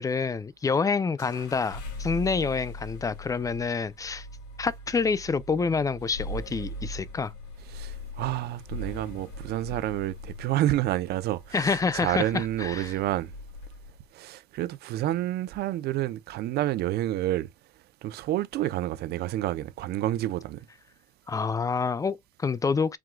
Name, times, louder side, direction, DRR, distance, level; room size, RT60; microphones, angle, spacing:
voice 1, 0.0-4.3 4.6-7.3 11.5-12.9 21.3-23.0, left 5 dB, 20° left, 0.4 m, -27 dB
sound 1, 1.2-14.0, left 1 dB, 85° left, 2.4 m, -41 dB
voice 2, 7.7-13.3 14.1-17.5 18.0-20.7, right 14 dB, 70° right, 0.6 m, -29 dB
4.7 x 3.6 x 2.2 m
cardioid pair, 110°, 17 cm